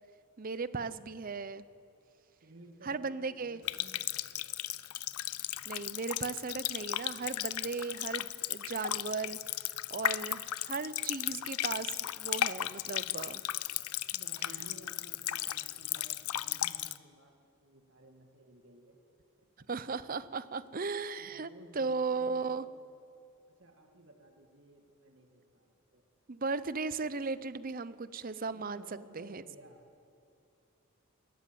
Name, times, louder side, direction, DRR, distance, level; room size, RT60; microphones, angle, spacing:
voice 1, 0.4-1.6 2.8-3.6 5.7-9.4 9.9-13.4 19.7-22.7 26.3-28.8 29.1-29.4, right 4 dB, 40° right, 15 dB, 0.6 m, -36 dB
voice 2, 2.4-4.2 11.2-11.5 14.1-17.3 17.6-19.0 19.4-19.7 21.2-22.9 23.6-25.7 25.9-26.0 28.5-29.9, right 1 dB, 60° right, 3 dB, 2.1 m, -56 dB
Water tap faucet, 3.6-17.0, left 13 dB, 90° left, 0.5 m, -35 dB
21.5 x 13.5 x 9.3 m, 2.6 s
head